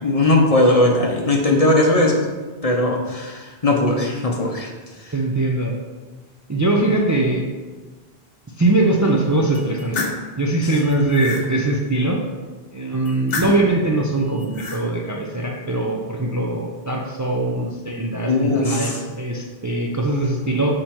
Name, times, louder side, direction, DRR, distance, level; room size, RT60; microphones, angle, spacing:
voice 1, 0.0-2.2 2.6-4.7 5.0-5.1 10.6-10.7 18.2-19.0, left 2 dB, 40° left, 0 dB, 0.8 m, -18 dB
voice 2, 5.1-5.7 6.5-7.5 8.6-10.1 10.4-12.2 12.7-20.7, right 2 dB, 25° right, 0 dB, 0.5 m, -21 dB
sound 1, 9.5-10.2 10.8-11.5 13.1-13.8 14.3-14.8, left 4 dB, 65° left, 1.1 m, -29 dB
6.6 x 4.3 x 4.4 m, 1.4 s
omnidirectional pair, 1.1 m